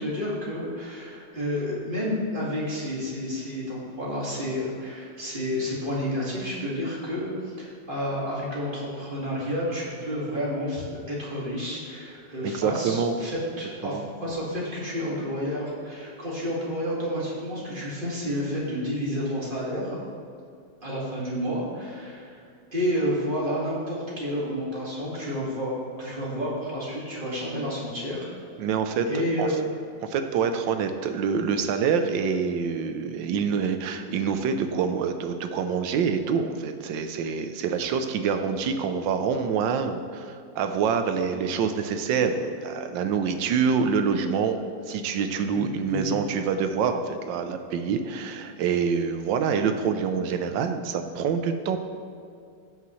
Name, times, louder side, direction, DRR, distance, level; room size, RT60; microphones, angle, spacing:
voice 1, 0.0-20.0 20.8-22.4 22.7-28.3 29.1-29.5 45.5-46.2, equal, 30° right, -6 dB, 2.2 m, -30 dB
voice 2, 12.4-13.1 13.8-14.0 28.6-29.1 29.4-29.5 30.0-44.6 44.9-51.8, right 6 dB, 90° right, 7 dB, 1.4 m, -26 dB
15.0 x 5.8 x 3.1 m, 2.4 s
omnidirectional pair, 2.0 m